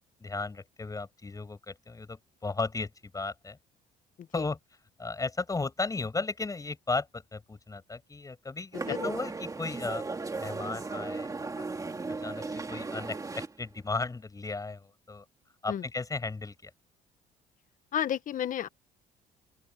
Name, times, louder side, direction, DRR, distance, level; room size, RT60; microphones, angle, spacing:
voice 1, 0.2-3.6 4.3-4.6 5.0-10.0 10.4-11.6 12.2-15.2 15.6-16.7, left 3 dB, 20° left, 6.1 m, -35 dB
sound 1, 8.7-13.5, right 3 dB, 20° right, 2.8 m, -36 dB
voice 2, 17.9-18.7, left 10 dB, 50° left, 1.3 m, -31 dB
open air
cardioid pair, 110°, 17 cm